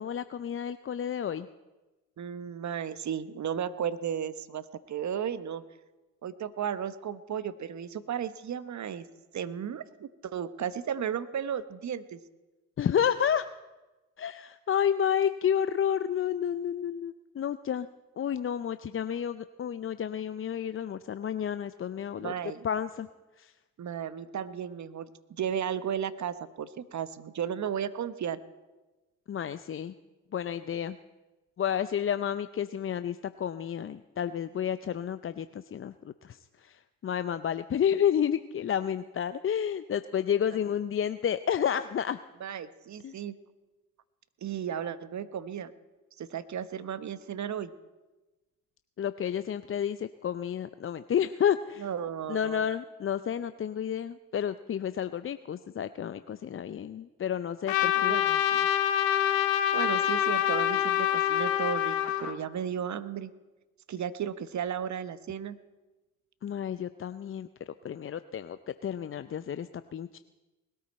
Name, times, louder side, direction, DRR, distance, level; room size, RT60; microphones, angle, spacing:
voice 1, 0.0-1.5 12.8-13.5 14.2-17.9 18.2-22.3 22.6-23.1 23.4-23.5 29.3-29.9 30.3-31.0 31.6-42.2 43.0-43.2 49.0-51.9 52.3-58.1 66.4-67.5 67.8-68.6 68.8-70.2, left 9 dB, 35° left, 12 dB, 0.6 m, -30 dB
voice 2, 2.2-5.6 6.2-9.0 9.3-12.2 22.2-22.6 23.8-28.4 42.4-43.3 44.4-45.7 46.2-47.7 51.8-52.7 58.1-58.7 59.7-63.3 63.9-65.6, right 8 dB, 45° right, 13 dB, 1.1 m, -34 dB
Trumpet, 57.7-62.4, left 11 dB, 90° left, 0.9 m, -26 dB
20.0 x 13.0 x 4.3 m, 1.1 s
hypercardioid pair, 50°, 39 cm